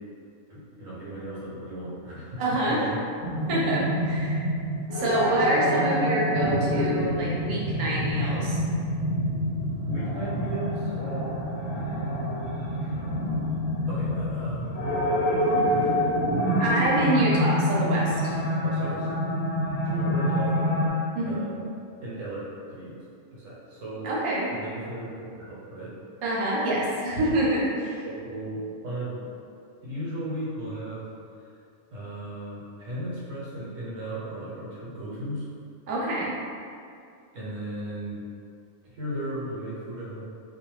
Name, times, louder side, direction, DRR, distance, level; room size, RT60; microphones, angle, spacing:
voice 1, 0.5-2.4 2.7-3.0 9.8-11.4 12.8-13.0 13.9-14.8 15.3-16.3 18.6-19.1 19.8-21.6 22.0-22.4 22.7-23.0 23.3-24.1 24.5-26.0 28.0-29.2 29.8-31.1 31.5-31.6 31.9-35.5 37.3-38.2 38.8-40.3, right 1 dB, 65° right, -8 dB, 1.1 m, -36 dB
voice 2, 2.4-2.9 3.5-4.4 4.9-8.6 16.6-18.4 21.1-21.4 24.0-24.5 26.2-28.0 35.9-36.3, right 1 dB, 90° right, -6 dB, 1.1 m, -26 dB
sound 1, 3.2-20.9, equal, 65° left, 0.9 m, -26 dB
2.4 x 2.2 x 3.0 m, 2.4 s
omnidirectional pair, 1.5 m